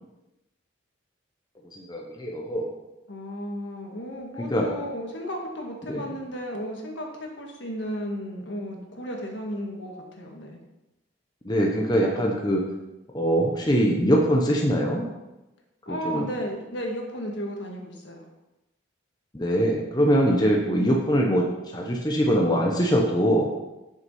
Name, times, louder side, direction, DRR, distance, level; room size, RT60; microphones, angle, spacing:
voice 1, 1.7-2.7 4.5-4.7 5.9-6.1 11.4-12.6 13.1-15.0 15.9-16.2 19.3-21.4 21.7-23.5, equal, 20° left, -1 dB, 0.9 m, -22 dB
voice 2, 3.1-10.6 15.9-18.3, equal, 70° left, 1 dB, 1.7 m, -34 dB
8.1 x 6.6 x 5.5 m, 1.0 s
head